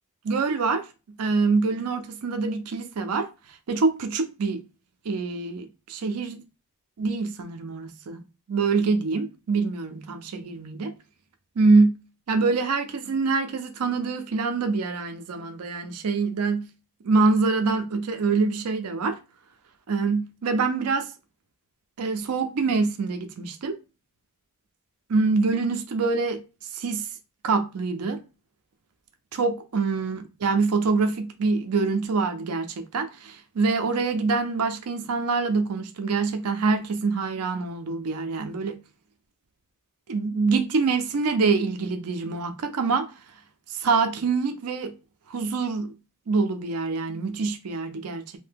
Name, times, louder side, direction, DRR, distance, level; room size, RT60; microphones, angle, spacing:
voice 1, 0.2-0.9 1.2-3.3 3.7-4.6 5.0-6.4 7.0-8.2 8.5-10.9 11.6-12.0 12.3-16.7 17.0-19.2 19.9-21.1 22.0-23.8 25.1-26.4 26.7-27.1 27.4-28.2 29.3-38.8 40.1-43.1 43.7-44.9 45.3-45.9 46.3-48.2, right 4 dB, 85° right, 0.5 m, -25 dB
2.7 x 2.1 x 3.4 m
head